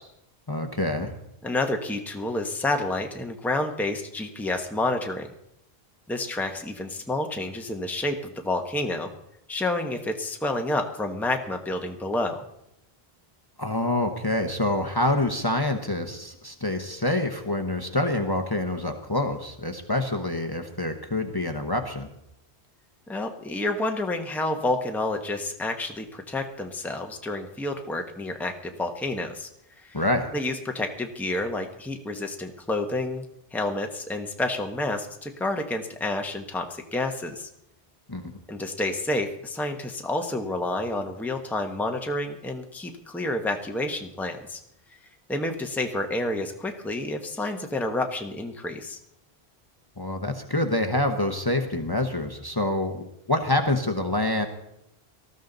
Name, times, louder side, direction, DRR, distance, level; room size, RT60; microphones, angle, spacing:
voice 1, 0.5-1.1 13.6-22.1 29.9-30.3 38.1-38.3 50.0-54.5, left 1 dB, 25° left, 5 dB, 1.1 m, -26 dB
voice 2, 1.4-5.3 6.1-9.1 9.5-12.4 23.1-29.5 29.8-30.0 30.3-33.2 33.5-37.5 38.5-44.6 45.3-49.0, left 2 dB, ahead, 4 dB, 1.0 m, -29 dB
18.5 x 13.5 x 4.0 m, 0.80 s
omnidirectional pair, 1.0 m